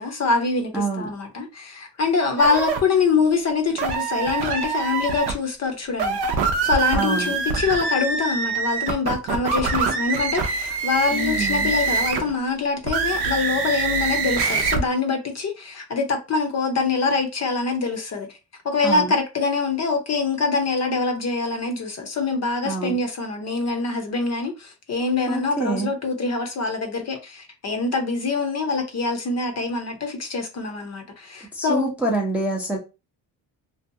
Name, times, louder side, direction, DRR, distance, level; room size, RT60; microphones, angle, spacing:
voice 1, 0.0-18.3 18.6-31.9, left 4 dB, 40° left, 0.6 m, -24 dB
voice 2, 0.7-1.1 6.9-7.3 11.1-11.8 18.8-19.1 22.6-23.0 25.3-25.9 31.5-32.8, right 2 dB, 5° right, 0.5 m, -26 dB
sound 1, 2.4-2.8 3.8-5.3 5.9-12.3 12.8-14.8, right 4 dB, 70° right, 0.6 m, -24 dB
2.6 x 2.2 x 2.6 m
cardioid pair, 135°, 41 cm